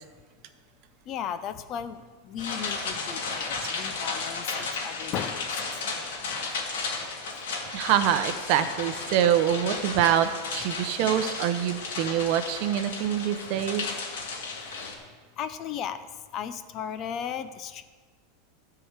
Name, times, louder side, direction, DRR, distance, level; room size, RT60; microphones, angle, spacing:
voice 1, 1.1-5.5 10.0-10.1 15.4-16.0 16.3-17.8, left 8 dB, 30° left, 11 dB, 0.6 m, -35 dB
sound 1, 2.4-14.9, left 4 dB, 80° left, 2.5 m, -34 dB
voice 2, 7.7-13.9, right 10 dB, 40° right, 10 dB, 0.8 m, -25 dB
13.5 x 4.8 x 8.1 m, 1.4 s
supercardioid pair, 175°, 0 cm